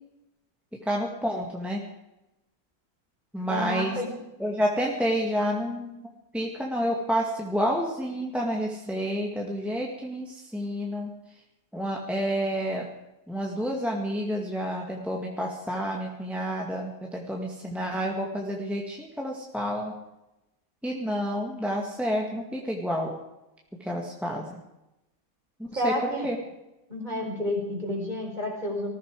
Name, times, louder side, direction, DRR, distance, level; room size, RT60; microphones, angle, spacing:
voice 1, 0.9-1.8 3.3-4.0 4.4-6.0 6.3-11.1 11.7-12.8 13.3-19.9 20.8-23.2 23.8-24.6 25.6-25.9 26.2-26.4, equal, ahead, -1 dB, 2.1 m, -29 dB
voice 2, 3.5-4.1 25.7-26.3 26.9-28.9, left 1 dB, 30° right, 0 dB, 4.5 m, -30 dB
19.5 x 15.0 x 4.9 m, 0.93 s
omnidirectional pair, 1.6 m